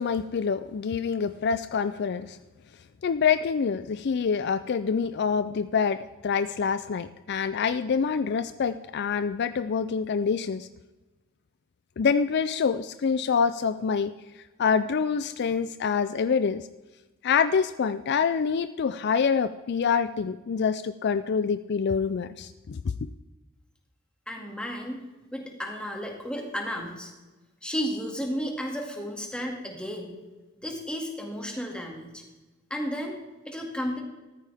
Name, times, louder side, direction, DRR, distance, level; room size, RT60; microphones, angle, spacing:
voice 1, 0.0-2.4 3.0-10.7 12.0-14.1 14.6-16.7 17.2-22.8, left 6 dB, 55° left, 12 dB, 0.4 m, -26 dB
voice 2, 24.3-25.0 25.3-27.1 27.6-30.1 30.6-32.2 32.7-33.2 33.5-34.0, equal, 5° left, 0 dB, 2.2 m, -33 dB
14.5 x 13.5 x 3.5 m, 1.1 s
head